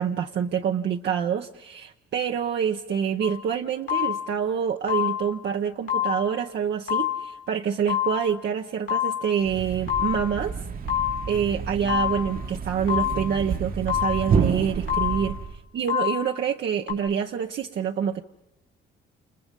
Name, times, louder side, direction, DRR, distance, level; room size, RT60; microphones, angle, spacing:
voice 1, 0.0-10.5 11.3-15.3 15.7-18.2, right 8 dB, 60° right, 3 dB, 0.9 m, -26 dB
sound 1, 3.2-3.5 3.9-4.4 4.9-5.5 5.9-6.5 6.9-7.4 7.9-8.5 8.9-9.5 9.9-10.4 10.9-11.5 11.9-12.5 12.9-13.4 13.9-14.4 14.9-15.5 15.9-16.5 16.9-17.0, left 11 dB, 75° left, 4.2 m, -28 dB
Thump thud, 9.4-15.6, right 5 dB, 45° right, 1.3 m, -29 dB
29.0 x 28.5 x 5.4 m, 0.85 s
cardioid pair, 90°, 20 cm